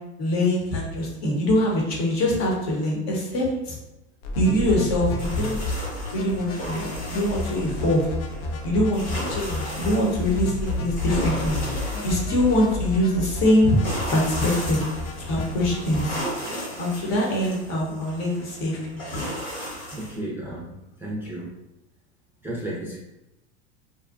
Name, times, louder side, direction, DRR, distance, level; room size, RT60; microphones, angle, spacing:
voice 1, 0.2-3.8 4.4-5.6 6.1-6.8 7.1-8.1 8.6-9.0 9.3-11.6 12.0-13.8 14.1-14.9 15.2-16.1 16.8-19.3, left 1 dB, 50° left, -2 dB, 0.9 m, -23 dB
sound 1, 4.2-16.2, left 2 dB, 65° left, 0.6 m, -31 dB
sound 2, 5.2-20.2, equal, 80° left, 1.5 m, -35 dB
voice 2, 19.9-20.7 21.0-21.5 22.4-23.0, right 1 dB, 5° right, -6 dB, 0.5 m, -33 dB
2.6 x 2.2 x 2.4 m, 0.91 s
supercardioid pair, 105°, 34 cm